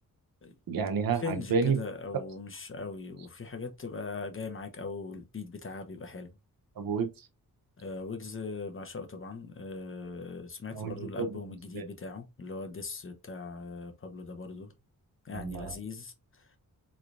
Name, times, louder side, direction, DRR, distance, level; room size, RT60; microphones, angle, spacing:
voice 1, 0.7-1.8 6.8-7.3 10.7-11.4 11.7-11.8 15.3-15.7, right 5 dB, 75° right, 0.8 m, -30 dB
voice 2, 1.2-6.4 7.8-14.7 15.2-16.6, left 4 dB, 35° left, 0.9 m, -40 dB
3.7 x 3.3 x 2.5 m
cardioid pair, 70°, 36 cm